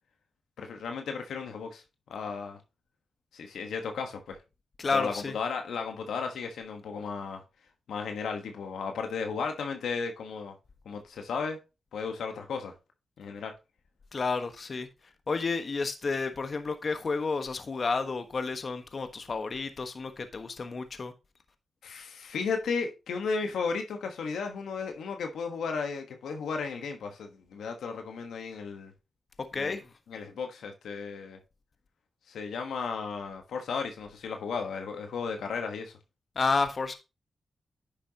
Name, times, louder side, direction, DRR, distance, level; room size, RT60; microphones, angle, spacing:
voice 1, 0.6-1.8 2.1-2.6 3.3-4.4 4.9-7.4 7.9-10.5 10.8-11.6 11.9-12.7 13.2-13.5 21.8-28.9 29.5-29.8 30.1-31.4 32.3-36.0, left 5 dB, 85° left, 1.3 m, -34 dB
voice 2, 4.8-5.3 14.1-14.9 15.3-21.1 29.4-29.9 36.3-36.9, left 4 dB, 55° left, 1.3 m, -31 dB
10.0 x 6.9 x 2.9 m
cardioid pair, 50°, 0 cm